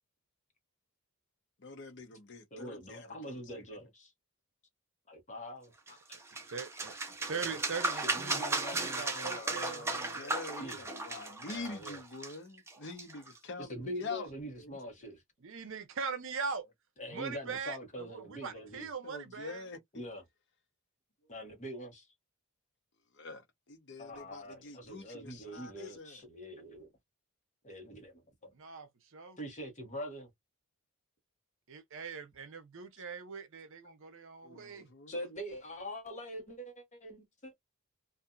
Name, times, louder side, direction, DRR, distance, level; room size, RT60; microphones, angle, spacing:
voice 1, 1.6-3.7 9.9-14.8 17.5-17.6 19.0-20.1 23.1-26.2 34.4-35.1, left 3 dB, 50° left, 0.8 m, -46 dB
voice 2, 2.5-4.1 5.1-6.2 6.5-6.6 7.2-7.6 7.9-9.9 10.6-10.8 11.5-12.0 13.7-15.2 17.0-18.9 19.9-20.2 21.3-22.1 24.0-26.9 27.6-28.5 29.4-30.3 35.1-37.5, equal, 30° left, 1.1 m, -44 dB
sound 1, 5.9-13.4, right 2 dB, 10° right, 0.6 m, -36 dB
voice 3, 6.5-6.9 7.3-10.2 15.4-16.7 17.1-19.6 28.5-29.4 31.7-34.9, right 5 dB, 60° right, 0.7 m, -41 dB
2.6 x 2.5 x 2.3 m
head